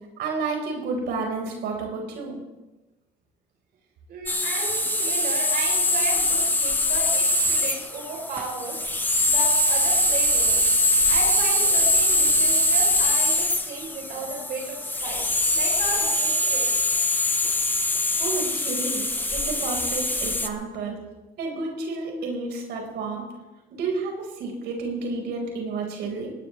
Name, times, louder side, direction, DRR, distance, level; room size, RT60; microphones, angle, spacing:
voice 1, 0.2-2.4 18.2-19.1 19.3-21.0 21.4-23.2 23.7-26.3, right 3 dB, 80° right, 1 dB, 5.2 m, -30 dB
voice 2, 4.1-8.8 9.2-10.6 11.1-15.2 15.5-16.8, right 3 dB, 65° right, -1 dB, 4.3 m, -34 dB
sound 1, 4.3-20.5, left 1 dB, 10° left, 1.2 m, -23 dB
19.0 x 18.5 x 3.5 m, 1.1 s
cardioid pair, 110°, 17 cm